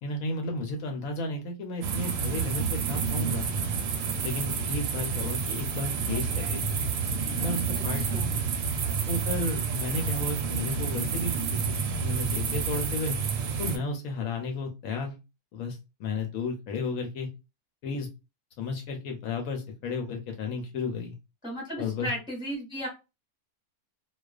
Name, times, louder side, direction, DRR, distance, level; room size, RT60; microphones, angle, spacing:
voice 1, 0.0-3.5 4.2-6.8 7.4-8.4 9.1-13.2 13.6-15.1 15.5-17.3 17.8-18.1 18.6-21.1 21.8-22.1, left 3 dB, 70° left, 3 dB, 1.0 m, -33 dB
sound 1, 1.8-13.8, right 5 dB, 70° right, 0.8 m, -29 dB
voice 2, 7.7-8.3 21.4-22.9, equal, 5° right, -2 dB, 0.7 m, -35 dB
2.3 x 2.3 x 2.3 m, 0.27 s
omnidirectional pair, 1.6 m